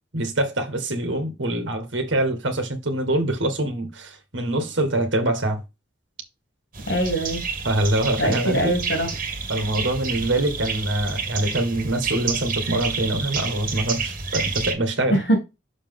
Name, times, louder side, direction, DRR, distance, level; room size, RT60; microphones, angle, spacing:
voice 1, 0.1-5.6 7.6-8.7 9.5-15.2, right 1 dB, 85° right, 1.6 m, -24 dB
sound 1, 6.7-14.7, right 5 dB, 45° right, 1.8 m, -29 dB
voice 2, 6.9-7.4 8.2-9.1 15.1-15.4, right 1 dB, 75° left, 3.0 m, -22 dB
6.3 x 5.7 x 3.7 m
head